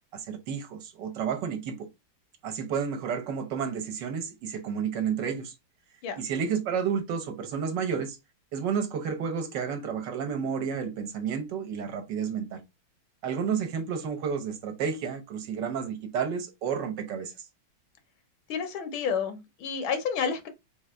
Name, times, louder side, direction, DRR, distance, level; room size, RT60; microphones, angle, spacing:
voice 1, 0.1-1.9 2.4-5.5 6.2-8.2 8.5-12.6 13.2-17.3, right 7 dB, 65° right, 1.4 m, -31 dB
voice 2, 18.5-20.5, left 6 dB, 85° left, 1.6 m, -30 dB
3.9 x 2.5 x 4.3 m
omnidirectional pair, 2.2 m